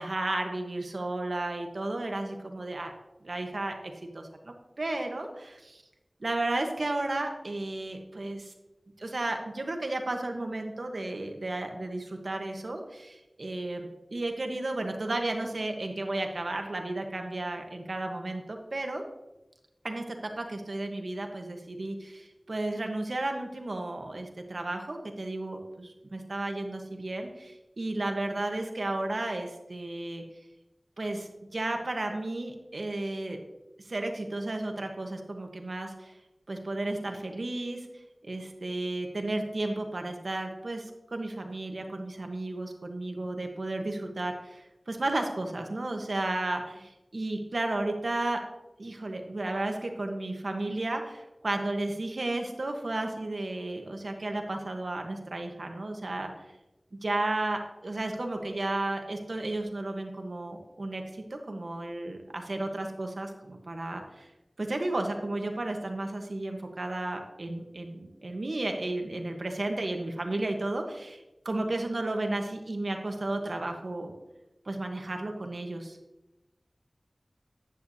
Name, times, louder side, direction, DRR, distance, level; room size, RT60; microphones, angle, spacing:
voice 1, 0.0-2.9 3.2-5.8 6.2-8.5 9.0-19.0 19.8-30.2 31.0-33.4 33.8-36.1 36.5-37.9 38.2-48.4 48.8-56.3 56.9-64.3 64.6-74.1 74.6-76.0, right 2 dB, 80° right, 4 dB, 1.1 m, -33 dB
10.0 x 8.2 x 2.7 m, 1.0 s
wide cardioid pair, 50°, 0 cm